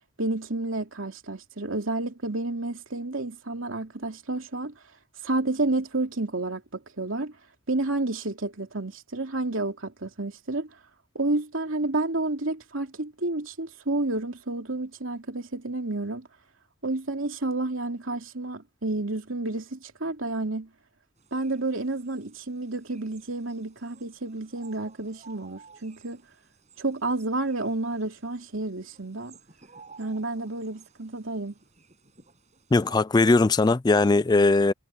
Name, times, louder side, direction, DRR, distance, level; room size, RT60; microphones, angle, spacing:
voice 1, 0.2-4.7 5.2-7.3 7.7-10.7 11.1-16.3 16.8-20.7 21.3-26.2 26.8-29.3 30.0-31.5, right 2 dB, 80° right, 2.9 m, -30 dB
sound 1, 21.2-33.0, right 5 dB, 35° right, 7.1 m, -55 dB
voice 2, 32.7-34.7, left 3 dB, 20° left, 0.3 m, -20 dB
head